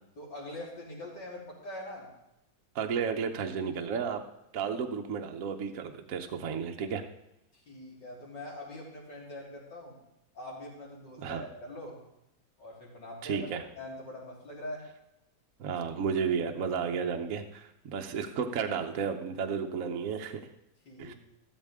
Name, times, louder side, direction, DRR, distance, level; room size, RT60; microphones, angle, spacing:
voice 1, 0.2-2.1 7.5-10.0 10.3-12.0 12.6-13.5 13.8-14.8 18.2-18.3 20.8-21.2, left 1 dB, 65° left, -4 dB, 4.2 m, -43 dB
voice 2, 2.7-4.2 4.5-7.0 11.2-11.4 13.2-13.6 15.6-20.4 21.0-21.1, right 6 dB, 55° right, 5 dB, 1.1 m, -32 dB
14.0 x 13.0 x 3.6 m, 0.87 s
omnidirectional pair, 2.1 m